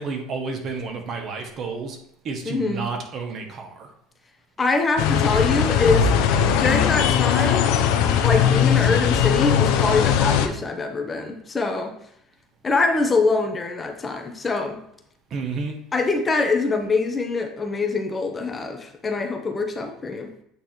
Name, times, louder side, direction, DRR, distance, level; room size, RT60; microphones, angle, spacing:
voice 1, 0.0-2.0 2.2-3.9 15.3-15.8, right 4 dB, 45° right, 3 dB, 1.4 m, -31 dB
voice 2, 2.5-2.9 4.6-6.1 6.4-7.8 8.2-11.9 12.6-14.8 15.9-20.3, left 3 dB, 20° left, 4 dB, 1.0 m, -24 dB
sound 1, 5.0-10.5, left 8 dB, 75° left, 0.7 m, -19 dB
8.5 x 3.2 x 4.4 m, 0.73 s
supercardioid pair, 115°, 0 cm